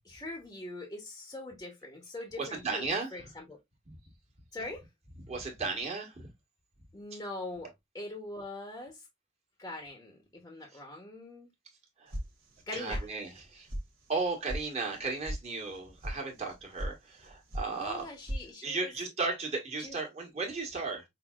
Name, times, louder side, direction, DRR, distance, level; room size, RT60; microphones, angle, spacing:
voice 1, 0.0-3.6 4.5-4.9 6.9-9.1 9.6-11.5 12.7-13.1 17.7-18.9 19.8-20.0, left 2 dB, 15° left, 0.8 m, -42 dB
voice 2, 2.4-3.1 5.2-6.3 12.7-13.7 14.1-18.0 18.6-21.0, right 3 dB, 30° right, 1.4 m, -35 dB
sound 1, 12.1-12.6 12.9-13.4 13.7-13.8 14.2-14.6 14.9-15.4 15.7-16.1 16.5-16.9 17.2-17.7 17.9-18.4, equal, 75° right, 1.3 m, -36 dB
5.6 x 2.7 x 2.3 m
head